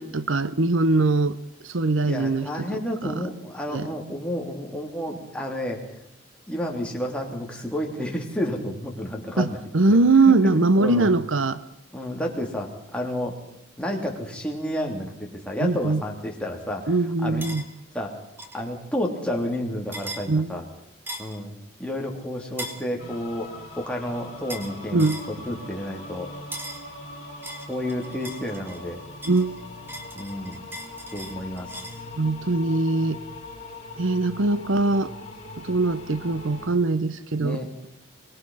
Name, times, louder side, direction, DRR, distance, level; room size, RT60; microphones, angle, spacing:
voice 1, 0.0-1.4 1.6-3.2 3.7-3.9 9.4-11.6 15.6-16.0 16.9-17.6 20.3-20.5 24.9-25.2 29.3-29.5 32.2-33.2 34.0-35.1 35.6-37.6, right 3 dB, 70° right, 14 dB, 0.9 m, -22 dB
voice 2, 2.0-5.8 6.5-9.6 9.9-10.0 10.2-11.1 11.9-13.4 13.8-16.9 17.2-17.4 17.9-18.2 18.5-20.6 21.2-21.5 21.8-23.5 23.8-26.3 27.7-29.0 30.1-30.6 31.1-31.7 37.4-37.7, equal, 5° left, 0 dB, 3.3 m, -30 dB
sound 1, 17.4-17.6 18.4-18.6 19.9-20.3 21.1-21.4 22.6-22.8 24.5-24.7 25.0-25.3 26.5-26.9 27.4-28.8 29.2-32.0, right 1 dB, 10° right, 2.3 m, -38 dB
sound 2, 23.0-36.7, left 2 dB, 30° left, 5.9 m, -41 dB
24.0 x 20.5 x 5.7 m, 0.74 s
head